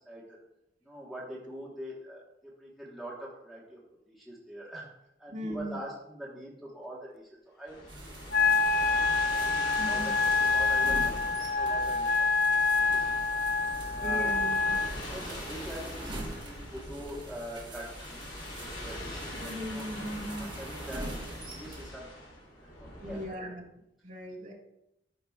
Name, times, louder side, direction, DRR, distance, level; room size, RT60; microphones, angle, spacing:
voice 1, 0.8-3.8 4.1-4.9 5.2-8.5 8.8-9.0 9.3-13.0 13.9-14.3 15.1-19.9 20.3-21.0 21.3-22.3 22.6-23.6, right 1 dB, ahead, -7 dB, 1.2 m, -44 dB
voice 2, 5.3-5.8 9.8-10.1 14.0-14.8 19.4-20.5 23.0-23.6 24.0-24.5, equal, 45° right, -2 dB, 1.5 m, -38 dB
sound 1, 7.7-23.2, left 1 dB, 80° left, 2.8 m, -43 dB
sound 2, 7.9-21.9, right 1 dB, 25° right, 1.3 m, -44 dB
Wind instrument woodwind instrument, 8.3-14.9, left 4 dB, 60° left, 0.5 m, -26 dB
12.5 x 5.0 x 2.3 m, 0.85 s
head